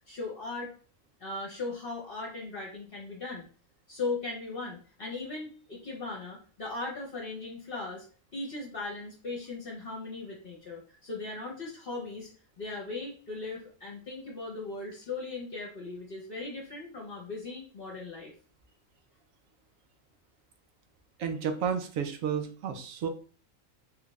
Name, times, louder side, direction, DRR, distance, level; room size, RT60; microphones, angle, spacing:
voice 1, 0.1-0.7 1.2-3.4 3.9-8.0 8.3-12.3 12.6-18.3, left 3 dB, 50° left, -2 dB, 0.9 m, -38 dB
voice 2, 21.2-23.1, right 7 dB, 90° right, 6 dB, 1.0 m, -31 dB
3.4 x 2.4 x 3.1 m, 0.40 s
omnidirectional pair, 1.4 m